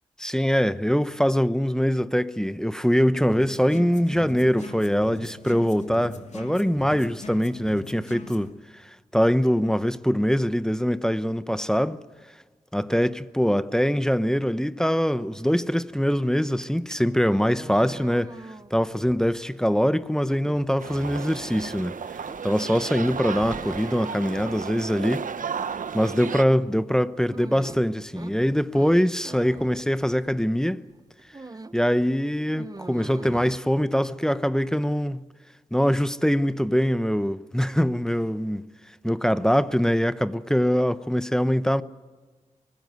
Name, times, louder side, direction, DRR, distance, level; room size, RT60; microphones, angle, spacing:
voice 1, 0.2-8.8 9.1-12.0 12.7-18.4 18.7-22.0 22.4-25.2 25.9-30.8 31.7-35.2 35.7-38.6 39.0-41.8, equal, 5° left, 0.9 m, -23 dB
sound 1, 3.3-8.5, left 3 dB, 55° left, 2.6 m, -41 dB
sound 2, 16.5-30.6 30.9-31.9 32.2-33.6, right 2 dB, 25° right, 0.8 m, -43 dB
sound 3, 20.8-26.4, right 6 dB, 70° right, 0.9 m, -34 dB
24.0 x 16.0 x 9.5 m
cardioid pair, 45°, 14 cm